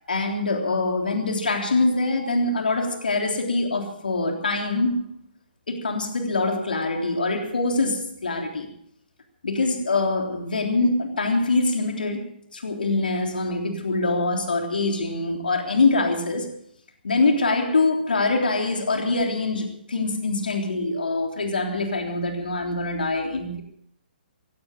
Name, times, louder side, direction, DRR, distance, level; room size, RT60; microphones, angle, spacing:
voice 1, 0.1-5.1 5.7-8.7 9.4-16.5 17.0-23.6, left 3 dB, 65° left, 3.4 m, -24 dB
17.0 x 17.0 x 4.9 m
figure-of-eight pair, 130°, 5 cm